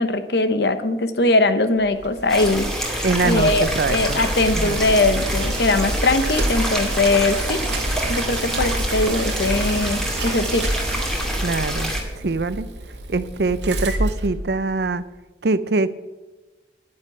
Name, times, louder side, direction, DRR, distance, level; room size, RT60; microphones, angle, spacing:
voice 1, 0.0-7.6 8.1-10.7, left 2 dB, 65° left, 10 dB, 1.0 m, -21 dB
Bicycle, 1.8-15.0, right 1 dB, 85° right, 1.6 m, -29 dB
sound 1, 2.3-12.0, equal, 5° left, 2.2 m, -26 dB
voice 2, 3.0-4.2 4.5-4.8 11.4-11.9 12.2-12.7 13.1-15.0 15.4-15.9, right 3 dB, 65° right, 15 dB, 0.6 m, -23 dB
9.8 x 9.7 x 8.4 m, 1.2 s
head